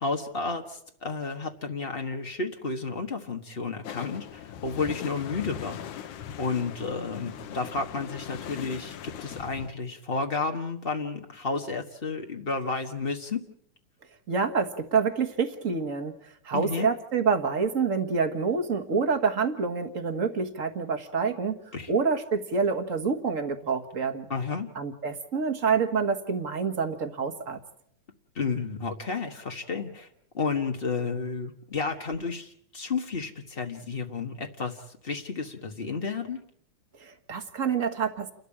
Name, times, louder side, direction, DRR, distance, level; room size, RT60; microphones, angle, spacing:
voice 1, 0.0-13.4 16.5-16.9 21.7-21.9 24.3-24.7 28.3-30.1 30.3-36.4, left 4 dB, 70° left, 3 dB, 0.5 m, -32 dB
sound 1, 3.8-9.7, left 9 dB, 90° left, 2.5 m, -40 dB
voice 2, 14.3-24.3 24.7-27.6 37.0-38.3, right 5 dB, 40° right, 7 dB, 1.2 m, -27 dB
29.5 x 13.0 x 8.6 m, 0.70 s
omnidirectional pair, 3.4 m